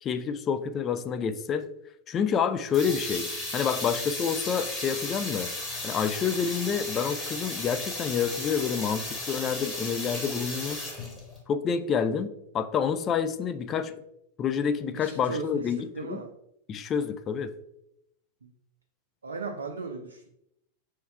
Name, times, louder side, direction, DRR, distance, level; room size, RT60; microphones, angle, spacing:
voice 1, 0.0-1.7 2.1-5.5 5.8-10.8 11.5-13.9 14.4-15.8 16.1-16.2 16.7-17.5, left 7 dB, 30° left, 10 dB, 0.4 m, -28 dB
sound 1, 2.7-11.4, left 2 dB, 10° left, 1.4 m, -35 dB
voice 2, 14.9-16.3 18.4-18.5 19.2-20.3, right 4 dB, 75° right, 3 dB, 0.4 m, -37 dB
3.4 x 3.1 x 4.3 m, 0.80 s
figure-of-eight pair, 90°, 0 cm